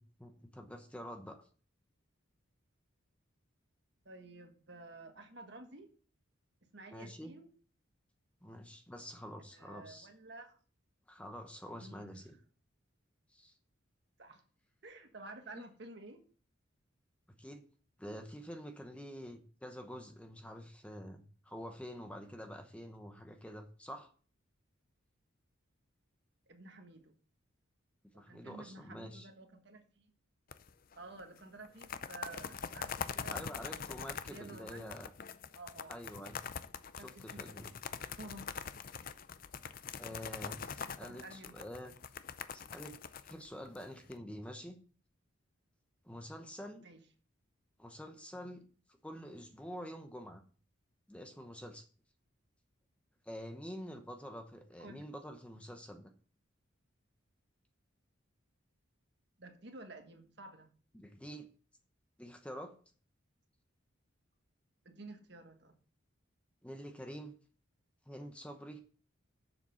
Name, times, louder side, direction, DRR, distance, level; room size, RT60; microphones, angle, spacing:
voice 1, 0.0-1.5 6.9-7.3 8.4-10.1 11.1-12.3 13.3-13.5 15.5-15.6 17.3-17.6 18.0-24.1 28.1-29.3 33.3-35.1 35.9-36.4 37.0-37.7 40.0-41.9 42.5-43.0 43.2-44.8 46.0-46.8 47.8-48.6 48.9-50.4 51.1-51.9 53.2-56.1 60.9-61.5 62.2-62.7 66.6-67.3 68.1-68.8, equal, 5° left, 5 dB, 0.9 m, -47 dB
voice 2, 4.0-5.9 6.7-7.5 9.5-10.6 11.8-12.3 14.2-14.4 14.8-16.2 26.5-27.1 28.1-30.1 30.9-33.6 34.2-34.9 35.5-35.9 37.0-37.4 38.2-38.6 41.0-41.5 46.8-47.0 54.8-55.1 59.4-60.7 64.8-65.7, right 2 dB, 55° right, 6 dB, 1.4 m, -51 dB
sound 1, 30.5-30.9 31.2-31.3 31.6-44.1, left 6 dB, 45° left, 0.5 m, -43 dB
7.4 x 6.8 x 5.7 m, 0.42 s
head